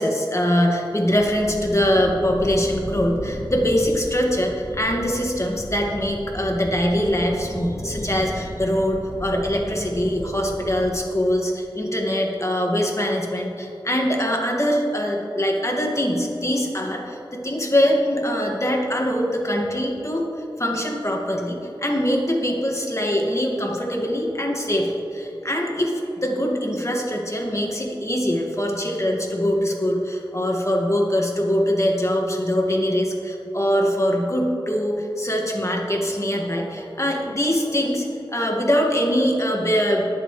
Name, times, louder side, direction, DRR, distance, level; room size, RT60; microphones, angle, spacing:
voice 1, 0.0-40.0, equal, 35° left, -1 dB, 2.1 m, -23 dB
sound 1, 1.1-10.8, left 1 dB, 70° left, 2.5 m, -34 dB
21.0 x 7.3 x 3.3 m, 2.9 s
wide cardioid pair, 40°, 9 cm